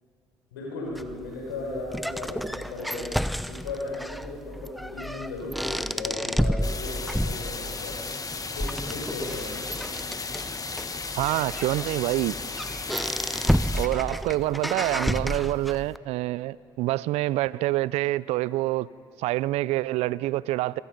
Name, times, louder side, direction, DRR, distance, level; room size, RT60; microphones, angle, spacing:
voice 1, 0.5-3.1 3.5-8.0 8.5-9.7, left 2 dB, 90° left, 6.3 m, -36 dB
sound 1, 1.0-16.0, equal, ahead, 0.8 m, -31 dB
sound 2, 6.6-13.9, left 4 dB, 30° left, 1.9 m, -35 dB
voice 2, 11.2-12.3 13.7-18.9 19.2-20.8, right 17 dB, 70° right, 0.5 m, -26 dB
26.5 x 25.0 x 5.4 m
hypercardioid pair, 50°, 11 cm